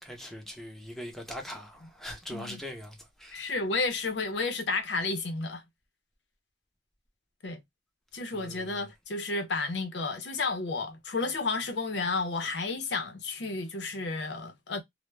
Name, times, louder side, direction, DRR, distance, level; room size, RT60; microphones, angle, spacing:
voice 1, 0.0-3.5 8.3-8.8, equal, ahead, 0.6 m, -42 dB
voice 2, 3.3-5.6 7.4-7.6 8.1-14.8, left 3 dB, 70° left, 0.6 m, -32 dB
2.3 x 2.1 x 3.1 m
head